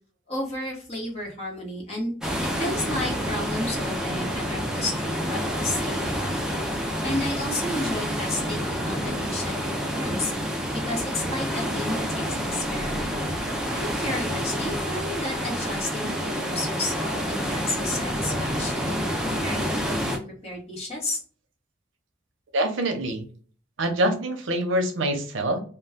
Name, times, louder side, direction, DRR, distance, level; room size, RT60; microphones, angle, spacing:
voice 1, 0.3-2.1 2.4-6.6 7.0-10.3 10.7-13.2 13.7-21.2, left 1 dB, 30° left, -3 dB, 1.0 m, -32 dB
sound 1, 2.2-20.2, equal, 5° right, 0.3 m, -28 dB
voice 2, 22.5-23.3 23.8-25.6, right 1 dB, 85° right, 5 dB, 0.6 m, -25 dB
2.3 x 2.2 x 3.5 m, 0.43 s
head